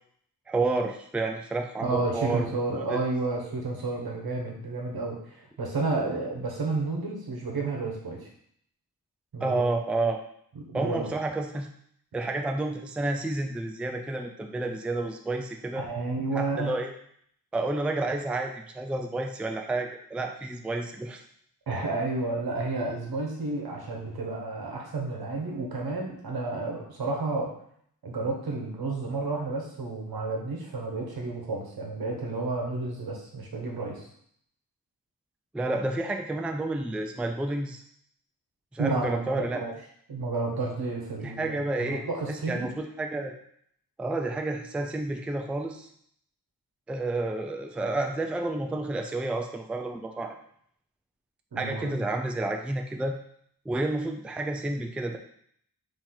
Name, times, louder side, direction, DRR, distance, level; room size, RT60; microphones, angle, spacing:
voice 1, 0.5-2.5 2.8-3.0 6.0-6.1 9.4-10.2 10.7-11.7 12.1-15.8 16.3-16.9 17.5-21.2 35.5-37.8 38.7-39.6 41.2-42.7 43.0-43.3 44.0-45.9 46.9-50.3 51.6-53.1 53.7-55.2, right 2 dB, 5° right, 3 dB, 0.3 m, -30 dB
voice 2, 1.8-8.3 9.3-9.6 10.6-11.1 15.8-16.7 21.7-27.5 28.0-34.1 38.8-39.7 40.1-42.7 51.5-52.0, right 3 dB, 80° right, 0 dB, 1.1 m, -31 dB
4.3 x 2.9 x 3.8 m, 0.66 s
wide cardioid pair, 120°, 37 cm